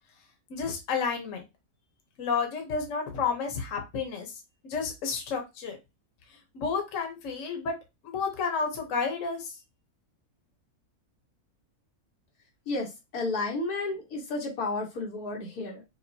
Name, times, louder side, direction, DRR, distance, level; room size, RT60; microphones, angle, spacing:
voice 1, 0.5-1.4 2.2-4.3 4.6-5.8 6.5-7.7 8.0-9.5, left 5 dB, 60° left, 3 dB, 1.3 m, -31 dB
voice 2, 12.6-15.8, left 3 dB, 85° left, -1 dB, 1.7 m, -32 dB
5.2 x 2.4 x 2.8 m, 0.23 s
omnidirectional pair, 1.6 m